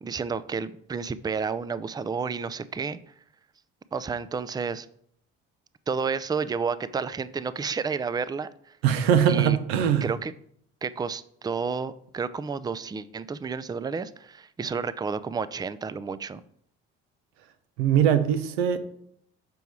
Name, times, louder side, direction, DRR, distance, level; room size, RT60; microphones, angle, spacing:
voice 1, 0.0-3.0 3.9-4.9 5.9-8.5 9.3-9.6 10.0-10.3 10.8-16.4, right 5 dB, 15° right, 0.4 m, -31 dB
voice 2, 8.8-10.0 17.8-18.8, right 9 dB, 90° right, 0.7 m, -21 dB
6.9 x 4.6 x 4.7 m
hypercardioid pair, 60°, 30 cm